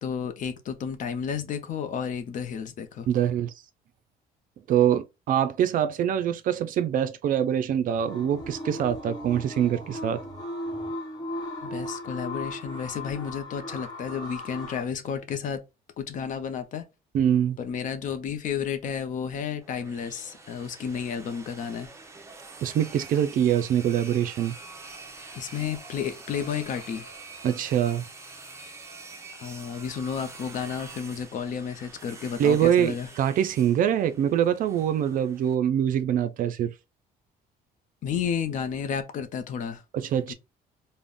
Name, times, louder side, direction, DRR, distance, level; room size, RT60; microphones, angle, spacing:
voice 1, 0.0-3.1 11.6-15.6 16.0-16.8 17.6-21.9 25.2-27.1 29.3-33.1 38.0-39.8 40.3-40.4, left 7 dB, 50° left, 0.5 m, -32 dB
voice 2, 3.1-3.5 4.7-10.2 17.1-17.6 22.6-24.5 27.4-28.0 32.4-36.7 39.9-40.3, right 9 dB, 55° right, 0.4 m, -24 dB
sound 1, 7.9-14.8, left 1 dB, 25° left, 1.1 m, -37 dB
sound 2, 19.6-35.5, right 3 dB, 15° right, 0.6 m, -46 dB
2.4 x 2.1 x 3.4 m
cardioid pair, 110°, 17 cm